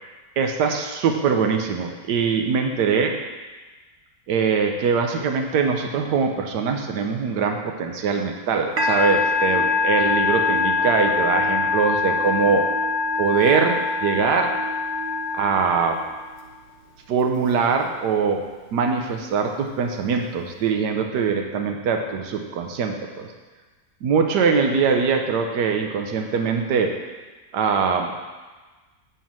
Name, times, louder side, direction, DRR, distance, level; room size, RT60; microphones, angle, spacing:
voice 1, 0.4-3.1 4.3-12.7 13.2-14.5 15.3-16.0 17.1-18.4 18.7-23.3 24.0-26.9 27.5-28.1, right 5 dB, 80° right, 4 dB, 1.4 m, -22 dB
Musical instrument, 8.8-16.4, left 4 dB, 45° right, 1.2 m, -23 dB
8.3 x 4.6 x 7.4 m, 1.3 s
omnidirectional pair, 1.8 m